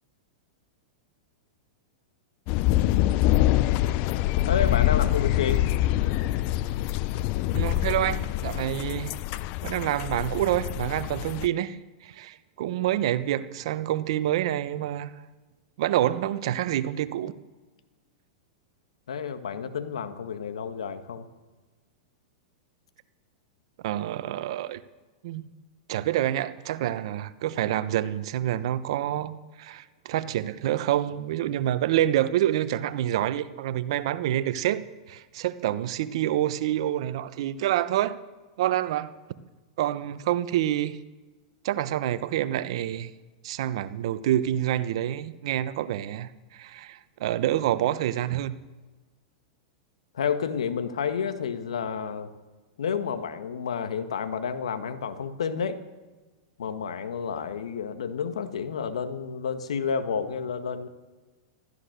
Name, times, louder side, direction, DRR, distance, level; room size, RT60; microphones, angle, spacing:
sound 1, 2.5-11.5, left 15 dB, 45° left, 0.6 m, -25 dB
voice 1, 4.5-5.6 19.1-21.3 50.1-52.3 52.8-55.8 56.6-60.9, left 6 dB, 80° left, 1.6 m, -30 dB
voice 2, 7.5-9.1 9.6-15.1 15.8-17.3 23.8-24.8 25.2-25.5 25.9-38.2 38.6-39.1 39.8-41.0 41.6-43.1 43.4-48.6, right 12 dB, 65° right, 1.0 m, -27 dB
15.0 x 13.5 x 6.7 m
hypercardioid pair, 115°, 3 cm